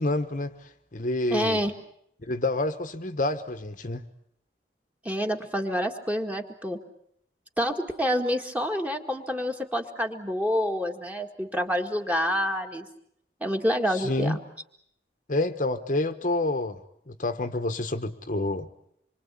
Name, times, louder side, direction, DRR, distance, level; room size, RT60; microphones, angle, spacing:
voice 1, 0.0-1.6 2.2-4.0 13.9-14.4 15.3-16.8 17.1-18.7, left 2 dB, 45° left, 8 dB, 1.1 m, -28 dB
voice 2, 1.3-1.7 5.0-6.8 7.6-12.9 13.4-14.4, equal, 10° right, 4 dB, 1.9 m, -27 dB
26.5 x 24.0 x 8.4 m, 0.71 s
head